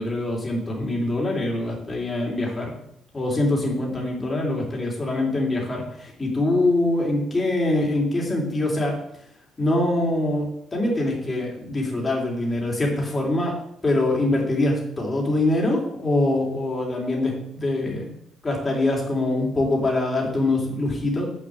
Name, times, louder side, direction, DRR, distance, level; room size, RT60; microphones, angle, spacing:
voice 1, 0.0-2.7 3.1-8.9 9.6-13.5 13.8-18.1 18.4-21.3, left 2 dB, 20° left, -1 dB, 3.2 m, -24 dB
9.6 x 5.7 x 7.6 m, 0.74 s
cardioid pair, 145°, 0 cm